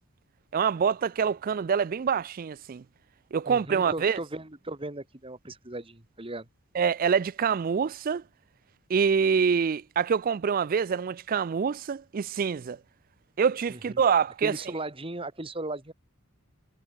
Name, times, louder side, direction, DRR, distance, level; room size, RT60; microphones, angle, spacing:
voice 1, 0.5-2.8 3.3-4.2 6.7-8.2 8.9-12.8 13.4-14.5, right 6 dB, 40° right, 0.3 m, -25 dB
voice 2, 3.5-6.5 13.7-14.0 14.4-15.9, right 2 dB, 25° right, 1.9 m, -37 dB
head